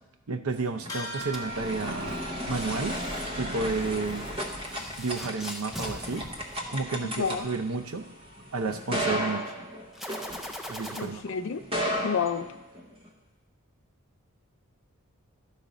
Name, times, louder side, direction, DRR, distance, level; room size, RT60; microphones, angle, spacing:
voice 1, 0.3-2.2 2.5-3.0 3.4-4.3 5.0-6.3 6.7-8.1 8.5-9.5 10.7-11.4, right 3 dB, 80° right, 7 dB, 0.7 m, -31 dB
sound 1, 0.6-11.0 11.6-13.1, equal, 25° right, 0.8 m, -34 dB
sound 2, 0.9-10.7, equal, 15° left, 1.1 m, -45 dB
sound 3, 1.1-7.3 9.9-11.0, equal, ahead, 0.4 m, -42 dB
voice 2, 7.0-7.5 11.0-11.7 12.0-12.5, left 6 dB, 60° left, 10 dB, 0.4 m, -30 dB
11.5 x 4.1 x 5.1 m, 1.0 s
head